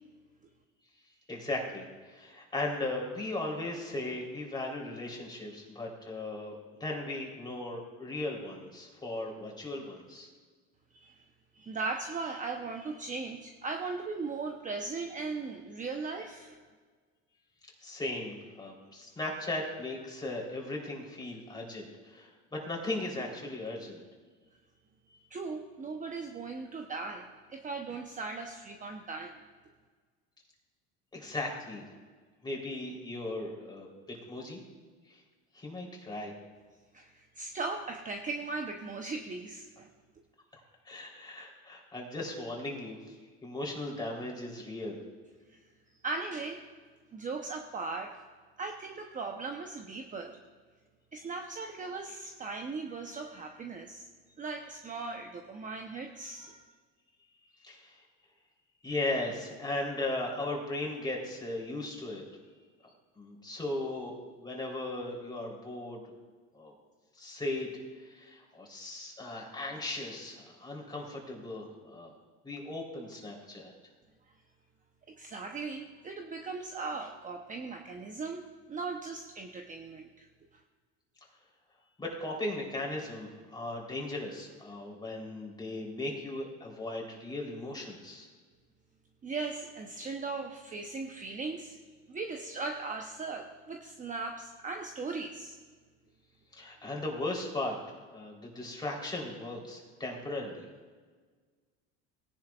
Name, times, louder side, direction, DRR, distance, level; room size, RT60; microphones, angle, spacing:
voice 1, 1.3-10.3 17.8-24.0 31.1-31.8 32.4-34.6 35.1-35.2 35.5-36.3 40.9-43.1 43.4-45.0 57.6-58.0 58.8-62.2 63.2-66.1 66.5-66.7 67.2-67.7 68.1-72.1 72.4-73.7 82.0-88.3 96.5-97.8 98.1-100.7, left 2 dB, 15° left, -1 dB, 3.6 m, -37 dB
voice 2, 11.5-16.6 25.3-29.3 36.9-39.9 45.5-45.6 46.0-46.6 47.1-48.2 48.6-50.4 51.1-54.1 54.4-56.6 75.1-80.3 89.2-91.8 92.1-95.6, right 3 dB, 25° right, 3 dB, 0.9 m, -38 dB
18.5 x 10.5 x 2.4 m, 1.5 s
supercardioid pair, 105°, 32 cm